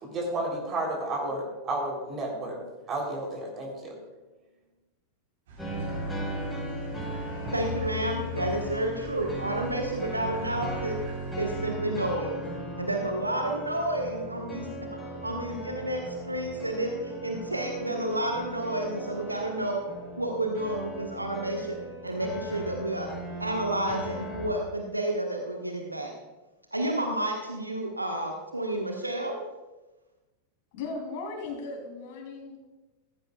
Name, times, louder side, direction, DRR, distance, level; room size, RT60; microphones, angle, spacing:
voice 1, 0.0-2.6 2.9-4.0, right 2 dB, 25° right, 0 dB, 3.5 m, -32 dB
sound 1, 5.5-11.6, right 1 dB, 60° right, 4.2 m, -45 dB
sound 2, 5.6-24.5, right 1 dB, 5° left, 4.8 m, -37 dB
voice 2, 7.5-11.0 11.4-12.4 12.8-19.8 20.2-21.8 22.0-23.1 23.4-26.1 26.7-29.4, right 1 dB, 85° right, 2 dB, 1.3 m, -30 dB
voice 3, 30.7-32.7, left 3 dB, 50° left, 1 dB, 3.2 m, -37 dB
16.5 x 14.0 x 2.4 m, 1.1 s
figure-of-eight pair, 90°, 0 cm